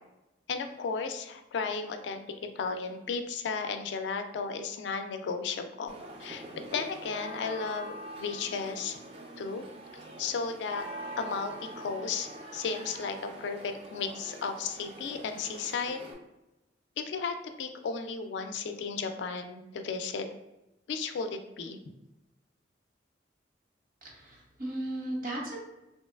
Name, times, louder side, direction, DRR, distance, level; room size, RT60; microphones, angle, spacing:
voice 1, 0.5-2.2 2.6-6.5 6.7-9.0 9.4-9.6 10.2-10.8 11.2-16.0 17.0-20.3 20.9-21.8, left 5 dB, 75° left, 7 dB, 0.3 m, -34 dB
sound 1, 5.9-16.1, right 1 dB, 30° right, 0.3 m, -44 dB
voice 2, 24.0-25.6, right 1 dB, 50° right, -2 dB, 0.9 m, -36 dB
3.0 x 2.8 x 2.3 m, 0.95 s
head